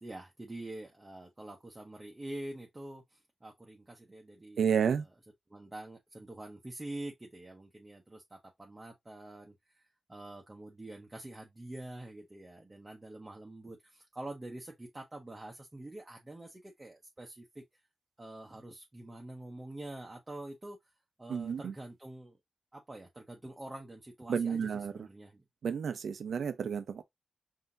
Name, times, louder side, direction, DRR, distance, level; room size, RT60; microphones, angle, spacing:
voice 1, 0.0-3.0 3.4-4.6 5.5-9.5 10.1-17.6 18.2-20.8 21.2-22.4 22.7-25.4, right 1 dB, 20° right, 0.9 m, -46 dB
voice 2, 4.6-5.0 21.3-21.7 24.3-25.1 25.6-27.0, right 7 dB, 90° right, 0.6 m, -31 dB
5.6 x 2.8 x 2.6 m
wide cardioid pair, 130°, 0 cm